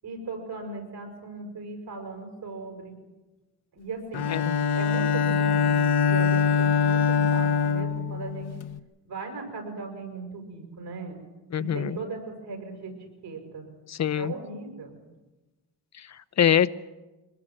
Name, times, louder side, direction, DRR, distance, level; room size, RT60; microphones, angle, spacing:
voice 1, 0.0-3.0 3.7-4.3 4.7-8.5 9.0-11.2 11.6-12.9 13.2-13.7 14.1-15.0, right 3 dB, 65° right, 3 dB, 6.6 m, -37 dB
Bowed string instrument, 4.1-8.7, left 6 dB, 70° left, 1.2 m, -23 dB
voice 2, 11.5-12.0 13.9-14.3 16.0-16.7, left 9 dB, 40° left, 15 dB, 0.7 m, -24 dB
23.5 x 20.0 x 7.7 m, 1.1 s
cardioid pair, 110°, 41 cm